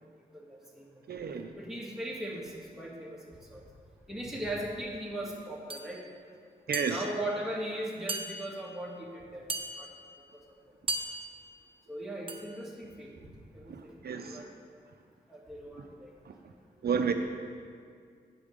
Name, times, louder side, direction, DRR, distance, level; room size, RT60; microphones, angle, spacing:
voice 1, 0.4-0.9 1.6-3.2 3.5-3.7 4.1-6.0 6.9-9.5 9.8-9.9 11.9-13.2 13.5-14.5 15.3-16.1, right 1 dB, 5° right, -3 dB, 1.8 m, -38 dB
voice 2, 1.1-1.5 6.7-7.0 13.7-14.5 16.3-16.4 16.8-17.1, right 6 dB, 75° right, 6 dB, 0.5 m, -31 dB
sound 1, 5.7-5.9 6.7-7.3 8.1-8.7 9.5-10.1 10.9-11.5 12.3-12.6, right 2 dB, 35° right, 0.7 m, -37 dB
8.5 x 5.0 x 6.6 m, 2.1 s
cardioid pair, 65°, 16 cm